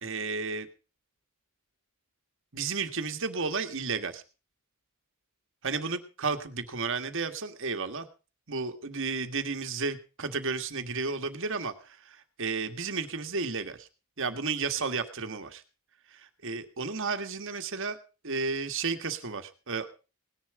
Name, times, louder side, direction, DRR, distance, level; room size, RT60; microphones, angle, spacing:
voice 1, 0.0-0.7 2.5-4.2 5.6-8.1 8.5-13.9 14.2-15.6 16.1-18.0 18.2-19.9, right 4 dB, 65° right, 8 dB, 1.8 m, -32 dB
18.5 x 10.5 x 4.9 m, 0.34 s
head